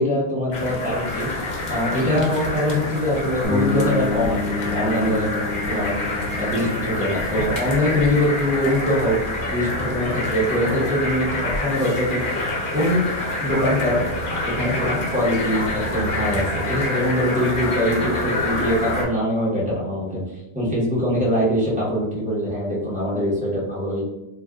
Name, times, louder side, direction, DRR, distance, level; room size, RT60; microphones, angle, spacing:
voice 1, 0.0-5.3 5.7-5.9 6.4-9.2 9.5-12.2 12.7-13.1 13.4-14.0 14.4-24.0, equal, 5° right, -7 dB, 0.9 m, -23 dB
sound 1, 0.5-19.0, left 2 dB, 55° left, 0.8 m, -27 dB
sound 2, 3.4-11.2, left 4 dB, 25° left, 1.2 m, -31 dB
2.5 x 2.3 x 3.4 m, 0.95 s
omnidirectional pair, 1.1 m